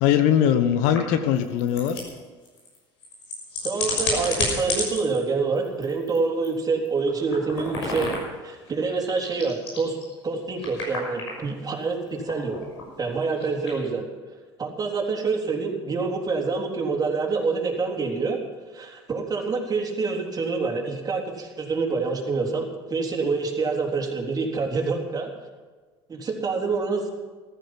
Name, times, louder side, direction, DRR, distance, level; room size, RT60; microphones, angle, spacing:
voice 1, 0.0-2.0, left 9 dB, 65° left, 10 dB, 1.2 m, -21 dB
sound 1, 0.9-5.2 5.6-6.2 6.4-6.5 6.8-8.4 8.7-10.1 10.6-11.3 11.8-13.8, left 2 dB, 80° left, 6.1 m, -31 dB
voice 2, 3.6-8.1 8.4-10.0 10.2-12.6 13.0-14.1 14.6-18.4 18.7-25.3 26.1-27.1, right 4 dB, 30° right, 1 dB, 3.7 m, -26 dB
15.0 x 14.0 x 6.0 m, 1.4 s
hypercardioid pair, 75°, 14 cm